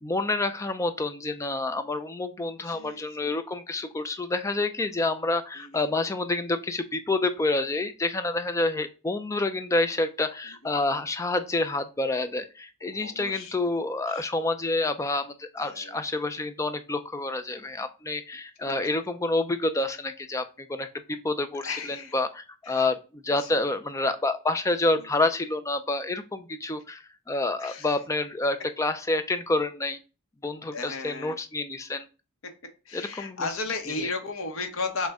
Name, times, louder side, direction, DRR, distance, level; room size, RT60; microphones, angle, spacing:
voice 1, 0.0-20.9 21.2-30.0 30.4-32.0 32.9-33.5 34.0-34.1, left 2 dB, 15° left, 9 dB, 0.3 m, -28 dB
voice 2, 2.6-3.4 5.5-5.9 10.5-10.6 12.9-14.3 15.6-16.0 21.5-22.1 22.6-22.9 23.4-23.7 25.0-25.1 27.6-27.9 30.7-31.4 32.8-35.1, left 3 dB, 70° left, 6 dB, 0.8 m, -35 dB
6.1 x 2.1 x 3.5 m, 0.32 s
head